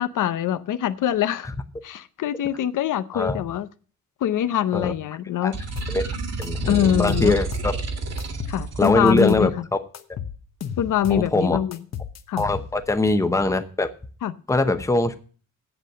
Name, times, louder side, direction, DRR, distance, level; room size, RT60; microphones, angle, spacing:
voice 1, 0.0-1.5 1.8-3.7 4.2-5.5 6.7-7.3 8.5-9.5 10.8-11.8 12.3-12.4 14.2-14.3, left 10 dB, 80° left, 0.7 m, -23 dB
sound 1, 5.5-8.9, right 3 dB, 55° right, 2.1 m, -29 dB
sound 2, 5.8-6.0 6.4-7.8 8.2-9.5 9.9-11.3 11.7-12.9, left 8 dB, 60° left, 1.0 m, -34 dB
voice 2, 6.4-7.7 8.8-9.5 11.1-11.6 12.4-13.9 14.5-15.2, left 2 dB, 10° left, 0.8 m, -22 dB
8.3 x 8.0 x 7.5 m
wide cardioid pair, 160°, 31 cm